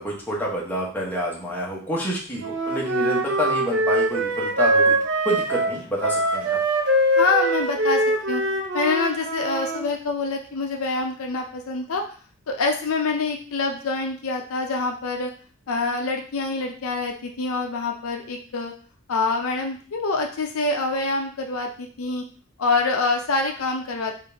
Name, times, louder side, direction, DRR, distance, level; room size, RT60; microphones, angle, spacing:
voice 1, 0.0-5.0 5.2-6.6, equal, 10° left, -4 dB, 0.9 m, -28 dB
Wind instrument woodwind instrument, 2.4-9.8, right 1 dB, 55° right, 0.6 m, -23 dB
voice 2, 7.2-8.4 8.7-12.0 12.5-15.3 15.7-18.7 19.1-22.3 22.6-24.1, left 3 dB, 70° left, 3 dB, 0.5 m, -26 dB
3.8 x 2.6 x 3.4 m, 0.43 s
head